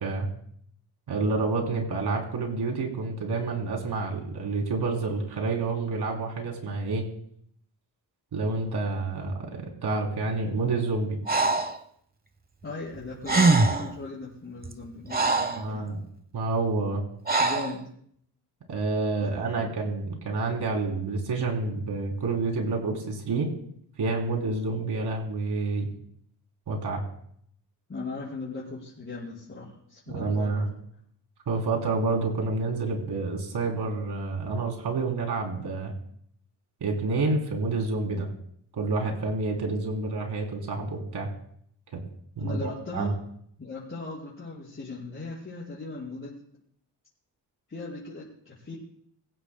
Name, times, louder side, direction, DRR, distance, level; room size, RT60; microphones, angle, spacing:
voice 1, 1.1-7.1 8.3-11.2 15.6-16.0 16.3-17.0 18.7-23.5 24.0-25.9 26.7-27.0 30.1-30.7 31.5-35.9 36.8-38.3 38.8-41.3 42.4-43.1, right 3 dB, 65° right, 1 dB, 3.4 m, -28 dB
Breathing, 11.3-11.8 13.0-13.1 13.2-13.9 14.6-15.7 17.3-17.8, right 3 dB, 20° right, 1.0 m, -23 dB
voice 2, 12.6-15.8 17.4-17.9 19.2-19.8 27.9-30.6 42.4-43.2 43.6-46.3 47.7-48.8, left 3 dB, 30° left, -8 dB, 5.1 m, -38 dB
25.0 x 16.5 x 2.2 m, 0.67 s
wide cardioid pair, 135°, 42 cm